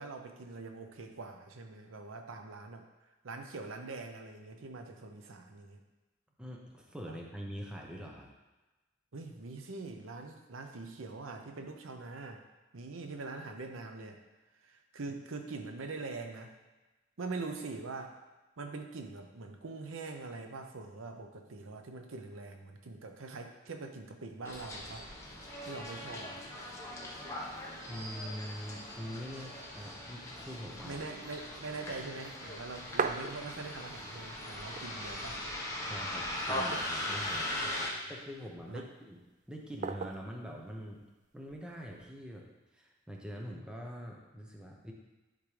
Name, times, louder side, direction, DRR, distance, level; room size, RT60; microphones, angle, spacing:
voice 1, 0.0-2.9 3.2-5.8 9.1-12.4 12.7-14.2 14.6-16.5 17.2-18.2 18.6-25.1 25.6-26.4 30.8-35.4 37.6-38.1 38.7-38.8, right 3 dB, 85° right, 5 dB, 0.7 m, -43 dB
voice 2, 6.4-8.3 27.9-31.0 35.8-37.6 38.1-39.2 39.5-41.0 41.3-44.9, equal, 5° right, -1 dB, 0.7 m, -44 dB
Bus, 24.4-37.9, left 1 dB, 15° left, 1.1 m, -40 dB
sound 1, 32.5-34.0 34.3-34.4 34.6-35.4 35.9-36.0 36.5-37.3 38.0-38.6 39.8-40.4 41.5-42.0, right 5 dB, 40° right, 0.3 m, -38 dB
10.0 x 3.7 x 3.2 m, 1.1 s
head